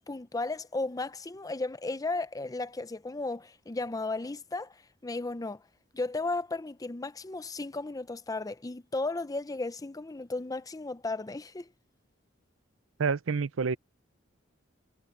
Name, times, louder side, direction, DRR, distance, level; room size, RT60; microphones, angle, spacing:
voice 1, 0.1-4.8 5.0-5.6 5.9-11.7, left 2 dB, 20° left, 0.6 m, -34 dB
voice 2, 13.0-13.8, right 5 dB, 75° right, 0.6 m, -28 dB
head